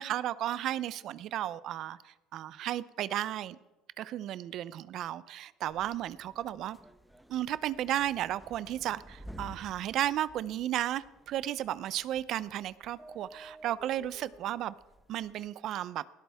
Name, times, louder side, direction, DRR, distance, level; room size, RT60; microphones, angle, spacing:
voice 1, 0.0-3.6 4.0-6.8 7.3-14.7 15.1-16.0, right 12 dB, 55° right, 17 dB, 0.5 m, -34 dB
sound 1, 5.7-15.5, equal, 5° right, 0.9 m, -53 dB
19.0 x 13.0 x 3.5 m, 1.1 s
cardioid pair, 120°, 0 cm